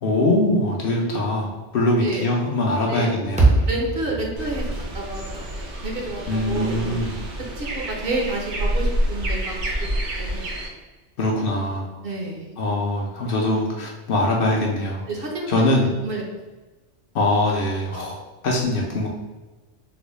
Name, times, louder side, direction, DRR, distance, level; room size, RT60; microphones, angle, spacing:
voice 1, 0.0-3.5 6.3-7.2 11.2-11.9 12.6-15.0 15.5-15.9 17.1-18.2 18.4-19.1, left 1 dB, 60° left, -1 dB, 0.7 m, -22 dB
sound 1, 3.4-7.7, right 2 dB, 10° right, 0.4 m, -25 dB
voice 2, 3.7-4.7 4.9-6.8 7.6-9.5 9.8-10.3 12.0-12.6 15.1-16.2, right 2 dB, 60° right, -1 dB, 0.8 m, -30 dB
sound 2, 4.4-10.7, right 1 dB, 85° right, 1.0 m, -28 dB
3.8 x 2.0 x 3.0 m, 1.2 s
omnidirectional pair, 1.1 m